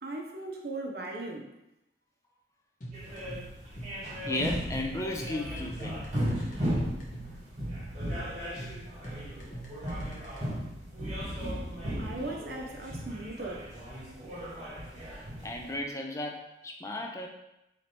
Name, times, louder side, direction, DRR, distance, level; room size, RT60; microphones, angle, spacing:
voice 1, 0.0-1.5 12.0-13.7, right 2 dB, 55° right, 1 dB, 0.6 m, -38 dB
sound 1, 2.8-10.4, right 1 dB, 45° left, 0.9 m, -44 dB
sound 2, 2.9-15.7, equal, 35° right, 1.5 m, -36 dB
voice 2, 4.2-6.0 15.4-17.3, left 2 dB, 15° left, 1 dB, 0.4 m, -35 dB
3.2 x 3.0 x 4.1 m, 0.88 s
head